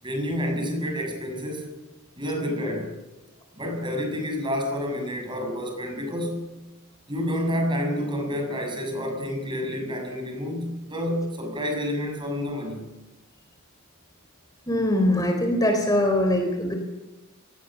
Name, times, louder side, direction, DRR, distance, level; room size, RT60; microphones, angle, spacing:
voice 1, 0.0-1.7 2.2-3.0 3.5-6.5 7.1-12.8, equal, 20° right, 4 dB, 7.1 m, -29 dB
voice 2, 14.7-16.7, left 1 dB, 15° left, 4 dB, 4.2 m, -22 dB
27.0 x 20.0 x 7.4 m, 1.0 s
head